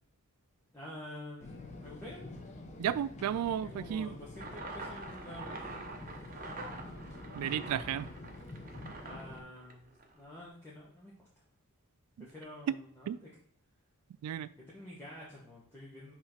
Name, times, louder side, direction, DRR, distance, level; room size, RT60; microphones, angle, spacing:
voice 1, 0.7-2.3 3.6-5.9 9.0-9.9 10.1-11.1 12.2-13.3 14.6-16.1, left 1 dB, 10° left, 1.3 m, -48 dB
sound 1, 1.4-9.4, left 2 dB, 30° left, 0.9 m, -47 dB
voice 2, 2.8-4.2 7.3-8.1 13.1-13.2 14.2-14.5, right 9 dB, 90° right, 0.3 m, -33 dB
sound 2, 4.4-10.2, right 3 dB, 40° right, 0.9 m, -46 dB
5.7 x 3.3 x 5.7 m
head